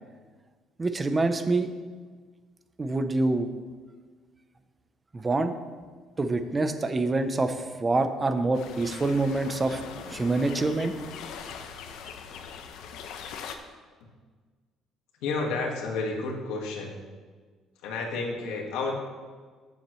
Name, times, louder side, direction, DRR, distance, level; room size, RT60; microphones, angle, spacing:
voice 1, 0.8-1.7 2.8-3.5 5.1-5.5 6.2-10.9, right 2 dB, 20° right, 9 dB, 0.7 m, -26 dB
sound 1, 8.5-13.6, left 7 dB, 75° left, 0.8 m, -41 dB
voice 2, 15.2-17.0 17.8-18.9, left 3 dB, 90° left, 0 dB, 1.8 m, -31 dB
14.0 x 7.2 x 3.2 m, 1.5 s
cardioid pair, 135°, 0 cm